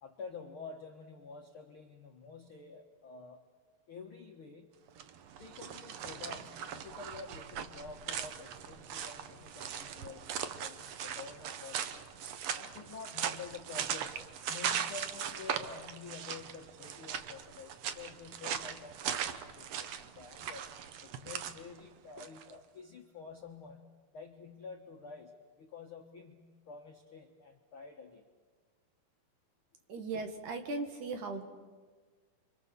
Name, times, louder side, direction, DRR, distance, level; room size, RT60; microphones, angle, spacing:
voice 1, 0.0-3.4 3.9-4.8 5.4-12.0 12.5-20.7 21.0-23.8 24.1-28.3, left 5 dB, 70° left, 3 dB, 1.3 m, -49 dB
sound 1, 4.9-22.5, right 8 dB, 90° right, 1.4 m, -39 dB
voice 2, 29.9-31.4, right 3 dB, 60° right, 5 dB, 2.8 m, -38 dB
29.0 x 24.5 x 6.8 m, 1.5 s
omnidirectional pair, 4.5 m